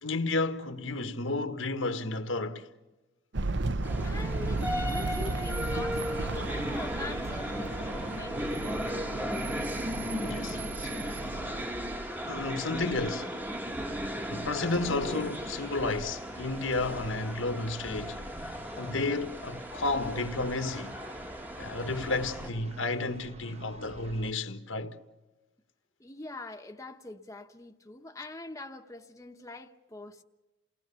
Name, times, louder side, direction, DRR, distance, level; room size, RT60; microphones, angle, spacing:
voice 1, 0.0-2.7 10.2-11.0 12.3-13.4 14.3-21.0 21.6-25.0, left 3 dB, 85° left, 1.6 m, -32 dB
sound 1, 3.3-11.7, right 2 dB, 60° right, 0.7 m, -34 dB
sound 2, 3.8-22.5, equal, 10° right, 1.1 m, -36 dB
voice 2, 4.0-8.6 26.0-30.2, left 2 dB, 15° left, 0.9 m, -43 dB
sound 3, 6.3-24.3, right 1 dB, 35° right, 1.0 m, -47 dB
29.5 x 18.5 x 6.9 m
head